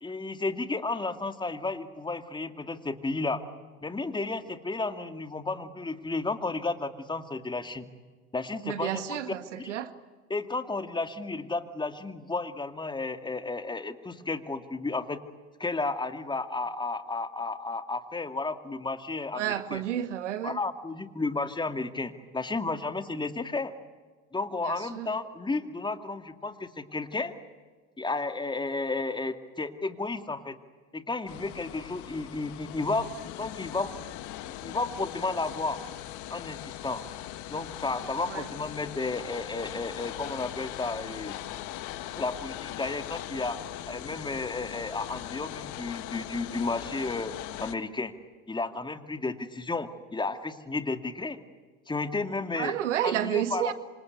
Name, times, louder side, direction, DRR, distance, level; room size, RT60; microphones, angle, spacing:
voice 1, 0.0-3.4 3.8-7.9 8.3-9.2 9.5-9.7 10.3-15.2 15.6-19.8 20.4-23.7 24.3-27.3 28.0-30.5 30.9-33.9 34.5-35.8 36.3-37.0 37.5-41.4 42.2-47.3 47.6-48.1 48.5-51.4 51.9-52.7 53.0-53.7, left 3 dB, 15° left, 8 dB, 2.4 m, -32 dB
voice 2, 8.6-9.9 19.3-20.6 24.6-25.1 38.3-38.5 52.6-53.7, right 11 dB, 85° right, 11 dB, 1.9 m, -31 dB
sound 1, 31.3-47.8, left 13 dB, 55° left, 1.8 m, -40 dB
27.0 x 26.0 x 8.2 m, 1.4 s
hypercardioid pair, 85°, 35 cm